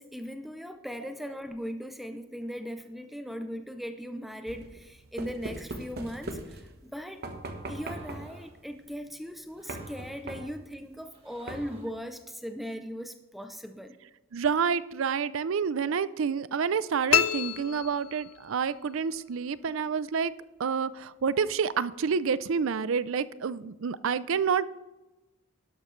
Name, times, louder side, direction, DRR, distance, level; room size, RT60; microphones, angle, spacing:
voice 1, 0.0-7.3 7.7-14.0, equal, ahead, 7 dB, 0.4 m, -39 dB
sound 1, 4.5-6.9 7.2-8.4 9.7-10.7 11.5-11.9, right 2 dB, 45° right, 1.1 m, -40 dB
sound 2, 7.6-8.6 9.5-10.3 11.0-12.0, right 1 dB, 25° right, 1.8 m, -55 dB
voice 2, 14.3-20.3 20.6-24.7, right 6 dB, 70° right, 17 dB, 0.4 m, -28 dB
sound 3, 17.1-18.7, left 11 dB, 90° left, 0.5 m, -28 dB
12.0 x 11.5 x 3.2 m, 1.1 s
head